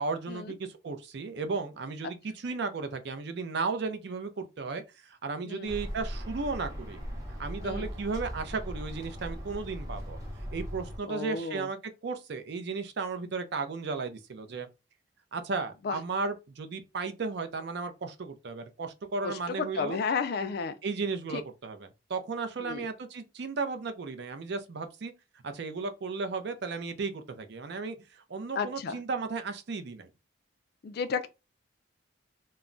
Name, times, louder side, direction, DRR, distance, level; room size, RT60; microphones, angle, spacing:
voice 1, 0.0-7.0 7.4-10.2 10.5-14.7 15.3-20.0 20.8-25.1 25.4-30.1, right 4 dB, 60° right, 0.5 m, -35 dB
sound 1, 5.7-11.0, equal, 15° right, 0.7 m, -39 dB
voice 2, 11.1-11.7 15.8-16.0 19.2-20.7 21.3-21.4 22.6-22.9 28.6-29.0 30.8-31.3, left 5 dB, 55° left, 0.3 m, -32 dB
2.3 x 2.0 x 3.7 m
head